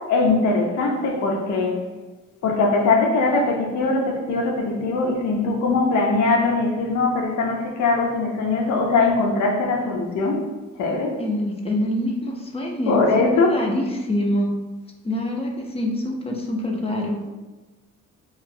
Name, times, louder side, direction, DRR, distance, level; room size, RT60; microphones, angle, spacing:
voice 1, 0.0-1.8 2.4-10.4 10.8-11.2 12.9-13.6, left 3 dB, 70° left, 1 dB, 0.7 m, -21 dB
voice 2, 11.2-13.1 13.3-14.5 15.0-17.2, left 1 dB, 20° left, 0 dB, 0.5 m, -25 dB
3.0 x 2.4 x 2.6 m, 1.2 s
cardioid pair, 90°, 30 cm